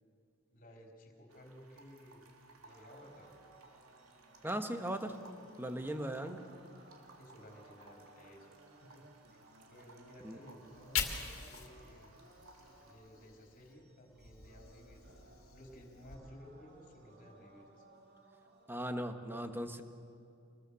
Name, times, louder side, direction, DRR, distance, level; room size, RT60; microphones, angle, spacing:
voice 1, 0.5-2.2 2.6-3.3 6.0-6.3 7.2-8.5 8.8-9.4 9.7-12.1 12.8-17.9, equal, 40° left, 1 dB, 4.1 m, -56 dB
sound 1, 1.3-12.9, right 3 dB, 90° right, 2.6 m, -62 dB
sound 2, 2.7-18.8, right 2 dB, 50° right, 2.0 m, -62 dB
voice 2, 4.4-5.2 5.6-6.4 10.2-10.4 18.7-19.8, right 1 dB, 10° right, 7 dB, 1.2 m, -38 dB
Fire, 10.6-13.7 14.1-16.1, left 7 dB, 70° left, 2.5 m, -43 dB
26.0 x 20.5 x 7.0 m, 2.4 s
head